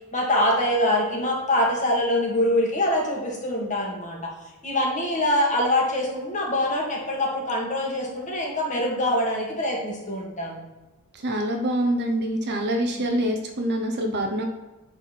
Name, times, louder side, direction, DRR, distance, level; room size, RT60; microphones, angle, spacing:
voice 1, 0.1-4.3 4.6-10.6, left 1 dB, 35° left, -1 dB, 1.7 m, -24 dB
voice 2, 11.1-14.5, right 1 dB, 50° right, 4 dB, 0.8 m, -25 dB
9.5 x 4.1 x 4.3 m, 1.1 s
head